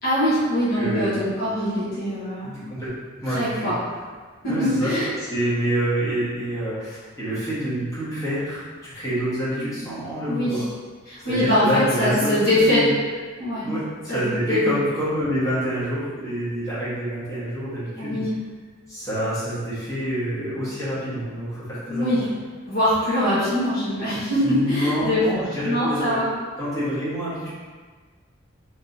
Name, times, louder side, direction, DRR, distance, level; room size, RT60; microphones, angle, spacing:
voice 1, 0.0-2.6 3.2-3.7 4.4-5.1 9.6-9.7 10.3-10.6 11.1-12.9 13.4-13.7 14.1-14.2 14.5-14.6 18.0-18.3 21.9-22.2 22.7-25.2 25.6-26.3, left 1 dB, 50° left, -12 dB, 1.2 m, -22 dB
voice 2, 0.7-1.2 2.4-3.7 4.4-10.7 11.2-12.9 13.6-18.2 18.9-22.3 24.1-26.2 26.6-27.5, right 1 dB, 15° left, -11 dB, 1.3 m, -27 dB
3.5 x 3.2 x 2.7 m, 1.5 s
head